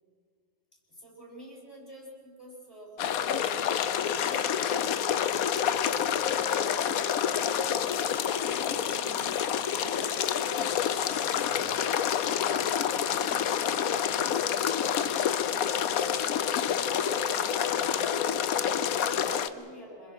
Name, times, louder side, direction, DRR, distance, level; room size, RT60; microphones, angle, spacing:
voice 1, 0.7-6.9 7.2-10.6 11.2-12.7 13.2-15.0 15.4-16.2 16.5-20.1, equal, 10° left, -2 dB, 6.6 m, -50 dB
sound 1, 3.0-19.5, left 9 dB, 60° left, 1.0 m, -28 dB
26.5 x 22.0 x 6.2 m, 2.1 s
omnidirectional pair, 2.2 m